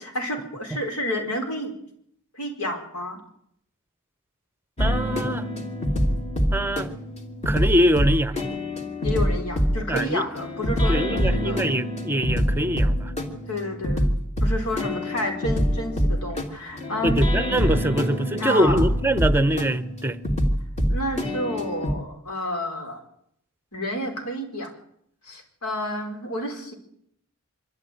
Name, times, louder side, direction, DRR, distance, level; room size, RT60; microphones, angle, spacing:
voice 1, 0.0-1.8 2.3-3.2 9.0-11.6 13.5-14.1 14.4-17.3 18.4-18.8 20.9-23.0 23.7-24.7 25.2-26.7, left 1 dB, 85° left, 4.8 m, -30 dB
sound 1, 4.8-21.9, equal, 30° left, 2.9 m, -25 dB
voice 2, 4.8-5.5 6.5-6.9 7.4-8.4 9.9-10.3 10.9-13.1 17.0-20.2, equal, 10° right, 0.8 m, -23 dB
24.5 x 13.0 x 9.3 m
head